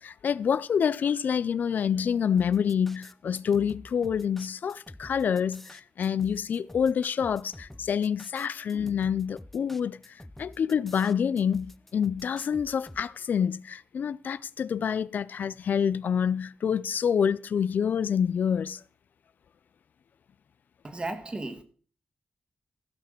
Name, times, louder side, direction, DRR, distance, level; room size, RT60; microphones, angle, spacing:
voice 1, 0.0-10.0 10.4-18.8, left 7 dB, 85° left, 0.4 m, -27 dB
hip hop dub., 2.4-13.0, left 1 dB, 5° left, 0.7 m, -48 dB
voice 2, 20.8-21.6, right 2 dB, 35° right, 1.8 m, -34 dB
15.5 x 5.8 x 6.4 m
wide cardioid pair, 90°, 3 cm